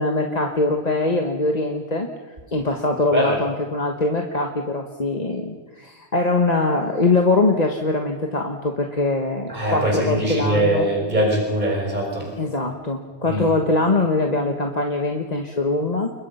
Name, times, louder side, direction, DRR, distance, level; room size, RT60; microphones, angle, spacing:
voice 1, 0.0-2.1 2.5-10.9 12.4-16.2, left 2 dB, 40° left, 2 dB, 1.6 m, -22 dB
voice 2, 9.5-12.3 13.2-13.4, right 1 dB, 40° right, -1 dB, 5.2 m, -21 dB
29.5 x 21.5 x 5.7 m, 1.3 s
omnidirectional pair, 1.1 m